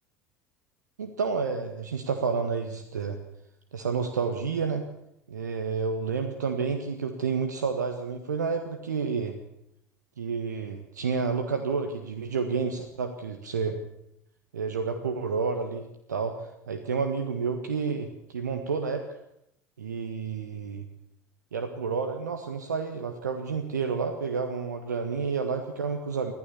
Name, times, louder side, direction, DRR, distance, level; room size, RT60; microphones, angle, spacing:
voice 1, 1.0-3.2 3.7-4.8 5.3-9.4 10.2-13.8 14.5-19.2 19.8-20.9 21.5-26.3, right 5 dB, 75° right, 6 dB, 1.5 m, -30 dB
24.0 x 15.5 x 7.0 m, 0.81 s
figure-of-eight pair, 70°, 9 cm